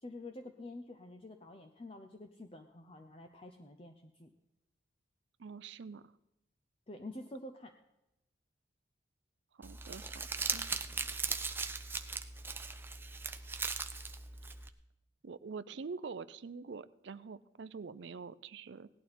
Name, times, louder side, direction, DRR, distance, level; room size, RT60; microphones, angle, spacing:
voice 1, 0.0-4.3 6.9-7.7, left 2 dB, 30° left, 5 dB, 0.7 m, -48 dB
voice 2, 5.4-6.1 9.6-10.3 10.5-10.7 15.2-18.9, right 5 dB, 65° right, 15 dB, 0.5 m, -45 dB
Crumpling crinkling, 9.6-14.7, right 4 dB, 10° right, 0.4 m, -39 dB
17.0 x 11.5 x 4.3 m, 0.90 s
head